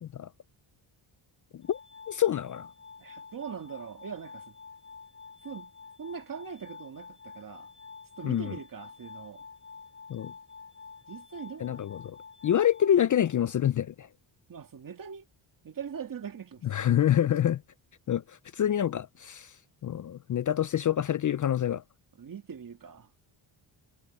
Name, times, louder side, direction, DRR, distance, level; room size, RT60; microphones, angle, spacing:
Glass, 1.6-13.6, left 5 dB, 25° left, 5.1 m, -49 dB
voice 1, 2.1-2.7 8.2-8.5 10.1-10.3 11.6-12.2 12.4-14.1 16.6-17.6 18.1-19.5 19.8-21.8, left 10 dB, 40° left, 0.4 m, -27 dB
voice 2, 3.0-4.5 5.4-5.7 6.0-7.7 8.2-9.4 11.1-11.9 14.5-15.3 15.6-16.6 22.2-23.1, right 7 dB, 40° right, 2.1 m, -41 dB
wide cardioid pair, 130°, 49 cm